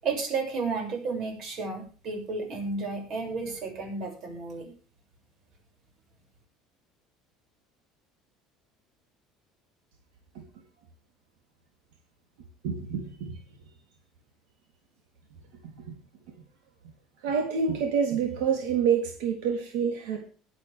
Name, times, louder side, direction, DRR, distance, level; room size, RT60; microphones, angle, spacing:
voice 1, 0.0-4.7, right 4 dB, 45° right, 3 dB, 6.9 m, -32 dB
voice 2, 12.6-13.3 17.2-20.3, right 6 dB, 80° right, 3 dB, 3.5 m, -27 dB
21.5 x 9.1 x 3.6 m, 0.38 s
cardioid pair, 155°, 0 cm